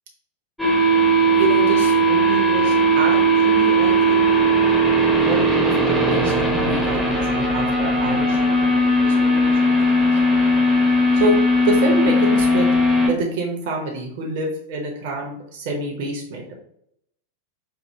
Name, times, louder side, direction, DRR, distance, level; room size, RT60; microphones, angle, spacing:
sound 1, 0.6-13.1, right 1 dB, 5° left, 0.8 m, -18 dB
voice 1, 1.3-4.3 5.1-8.6 9.0-10.5 11.1-11.4 11.6-12.7 13.1-16.6, right 2 dB, 50° right, -1 dB, 0.8 m, -27 dB
4.6 x 2.7 x 2.7 m, 0.74 s
figure-of-eight pair, 90°, 0 cm